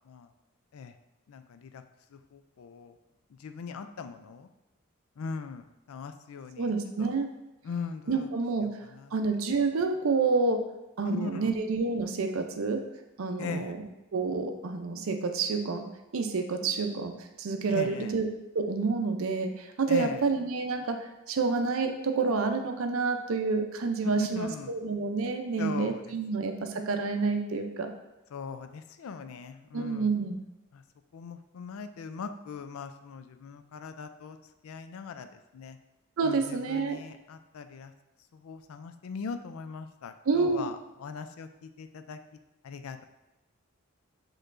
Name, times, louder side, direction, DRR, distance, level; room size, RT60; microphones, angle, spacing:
voice 1, 1.3-1.8 2.3-2.9 3.4-4.5 5.2-6.7 7.0-7.1 7.7-8.3 11.0-11.5 13.4-13.7 17.7-18.1 19.9-20.2 24.2-24.7 25.6-26.0 28.3-30.1 30.7-30.8 31.1-34.4 34.6-35.3 35.5-35.8 36.2-37.9 38.4-40.7 41.0-42.2 42.6-43.0, left 5 dB, 75° left, 9 dB, 0.4 m, -40 dB
voice 2, 6.6-7.3 8.1-10.6 11.0-12.8 13.2-13.9 14.1-27.9 29.7-30.4 36.2-37.0 40.3-40.7, right 4 dB, 75° right, 5 dB, 0.5 m, -29 dB
6.5 x 3.1 x 2.5 m, 0.96 s
head